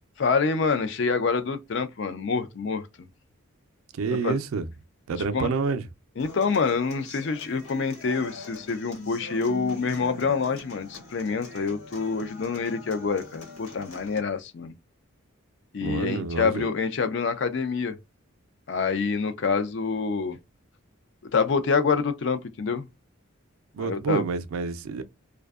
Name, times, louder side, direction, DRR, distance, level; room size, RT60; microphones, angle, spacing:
voice 1, 0.0-2.9 4.2-4.4 5.3-5.5 6.2-14.7 15.7-18.0 18.7-20.4 21.3-22.9 23.8-24.2, left 5 dB, 55° left, 0.4 m, -26 dB
voice 2, 3.9-4.7 5.1-5.8 15.8-16.7 23.7-25.0, right 5 dB, 80° right, 0.4 m, -28 dB
Human voice / Acoustic guitar, 6.2-14.2, left 3 dB, 90° left, 1.3 m, -43 dB
2.5 x 2.2 x 2.3 m
head